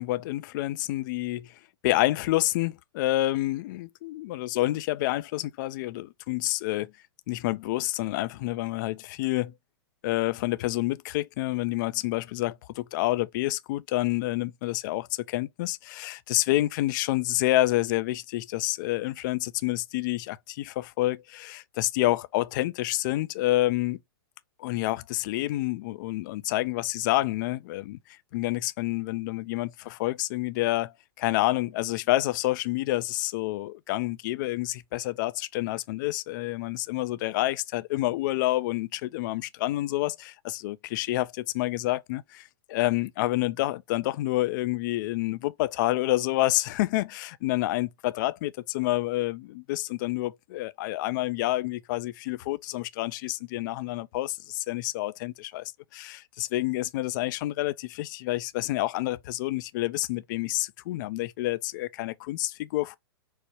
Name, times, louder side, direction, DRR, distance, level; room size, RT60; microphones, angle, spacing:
voice 1, 0.0-1.5 1.8-6.9 7.3-9.5 10.0-24.0 24.6-55.6 55.9-63.0, left 17 dB, 50° left, 0.4 m, -28 dB
4.7 x 2.1 x 2.8 m
hypercardioid pair, 125°, 13 cm